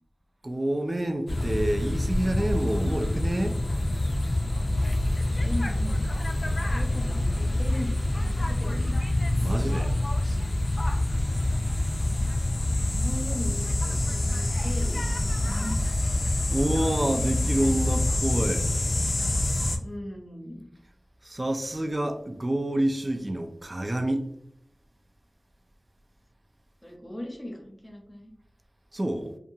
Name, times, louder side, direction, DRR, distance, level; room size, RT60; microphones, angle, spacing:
voice 1, 0.4-3.6 9.4-10.0 16.5-18.7 21.2-24.3 28.9-29.4, right 1 dB, 35° right, 0.3 m, -28 dB
sound 1, 1.3-19.8, left 1 dB, 60° left, 0.3 m, -26 dB
voice 2, 5.3-6.0 6.7-9.0 11.3-11.8 12.9-15.9 19.8-20.6 26.8-28.3, left 1 dB, 25° left, 0.7 m, -38 dB
2.7 x 2.3 x 2.7 m
wide cardioid pair, 65°, 0 cm